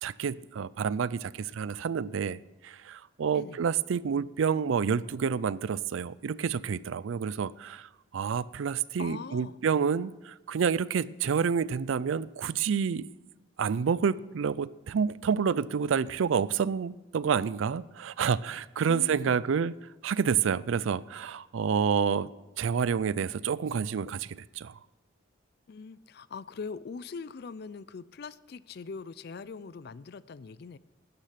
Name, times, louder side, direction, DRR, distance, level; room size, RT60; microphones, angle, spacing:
voice 1, 0.0-13.1 13.6-19.7 20.0-22.3 22.6-24.8, right 6 dB, 75° right, 19 dB, 0.4 m, -29 dB
voice 2, 9.0-9.6 18.9-19.5 25.7-30.8, left 5 dB, 50° left, 18 dB, 0.4 m, -42 dB
13.0 x 9.9 x 5.8 m, 1.1 s
head